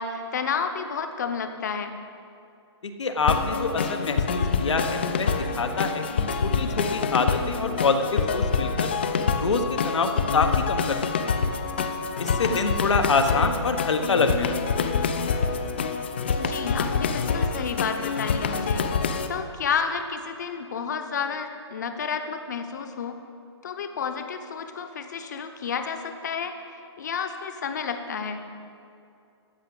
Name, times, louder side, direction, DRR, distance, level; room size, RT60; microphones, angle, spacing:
voice 1, 0.0-1.9 12.4-12.6 16.3-18.9 19.3-23.3 23.6-28.4, left 6 dB, 40° left, 7 dB, 0.9 m, -31 dB
voice 2, 3.0-6.0 6.4-8.9 9.4-11.0 11.2-11.4 12.2-14.9, left 4 dB, 90° left, 6 dB, 1.3 m, -26 dB
sound 1, 3.3-19.3, left 5 dB, 25° left, 0.4 m, -26 dB
14.0 x 6.0 x 7.8 m, 2.5 s
hypercardioid pair, 175°, 15 cm